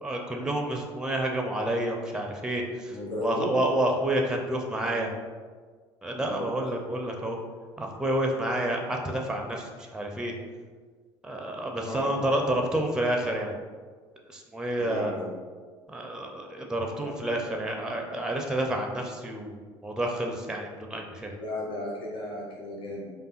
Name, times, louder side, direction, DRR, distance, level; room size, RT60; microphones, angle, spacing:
voice 1, 0.0-3.0 3.2-5.1 6.0-7.4 7.8-10.3 11.2-13.5 14.3-15.1 15.9-19.5 19.8-21.3, right 1 dB, 5° right, 2 dB, 0.5 m, -29 dB
voice 2, 2.9-3.5 6.2-6.4 11.5-12.1 14.8-15.3 21.3-23.1, left 1 dB, 35° left, -4 dB, 1.0 m, -35 dB
4.8 x 2.4 x 2.4 m, 1.5 s
figure-of-eight pair, 60°, 14 cm